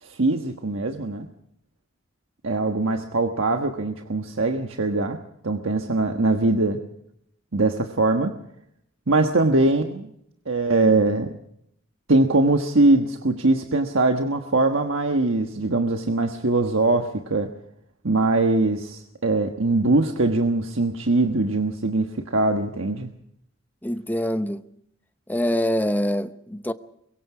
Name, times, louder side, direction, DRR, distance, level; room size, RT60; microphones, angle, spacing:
voice 1, 0.0-1.3 2.4-6.8 7.5-8.3 9.1-10.1 10.5-11.4 12.1-17.5 18.0-23.1, right 2 dB, 70° right, 1.3 m, -22 dB
voice 2, 23.8-24.6 25.3-26.7, equal, 10° left, 0.8 m, -25 dB
23.5 x 22.5 x 4.9 m
head